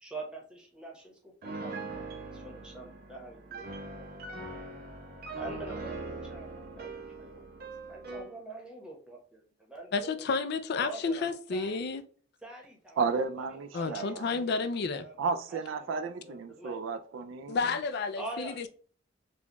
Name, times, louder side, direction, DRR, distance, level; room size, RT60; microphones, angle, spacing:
voice 1, 0.0-4.1 5.3-10.3 10.8-11.9 12.4-13.0 13.5-15.2 15.5-16.0 16.2-16.8 18.2-18.6, right 2 dB, 5° right, 0.9 m, -45 dB
Piano, 1.4-8.3, right 3 dB, 50° right, 0.7 m, -41 dB
voice 2, 9.9-12.0 13.7-15.1 17.5-18.7, left 4 dB, 60° left, 0.4 m, -31 dB
voice 3, 13.0-14.4 15.2-17.6, right 5 dB, 90° right, 0.4 m, -33 dB
4.2 x 2.3 x 2.9 m
head